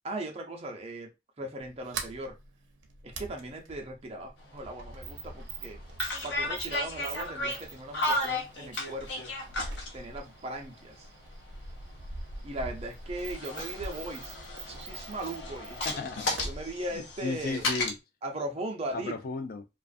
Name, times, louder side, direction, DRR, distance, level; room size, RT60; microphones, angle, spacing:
voice 1, 0.0-1.1 1.4-2.4 3.0-5.8 6.2-9.3 9.9-11.1 12.4-14.4 14.7-15.8 16.4-17.7 18.2-19.2, right 1 dB, 35° right, 0.6 m, -38 dB
Sliding door, 1.6-18.0, right 3 dB, 85° right, 0.5 m, -43 dB
sound 1, 4.4-4.5 4.9-5.2 5.9-10.0 11.0-12.7 13.1-17.9, left 1 dB, 75° left, 0.7 m, -34 dB
voice 2, 15.8-16.4 16.9-18.0 18.9-19.7, left 3 dB, 50° left, 0.3 m, -35 dB
2.4 x 2.4 x 2.4 m
head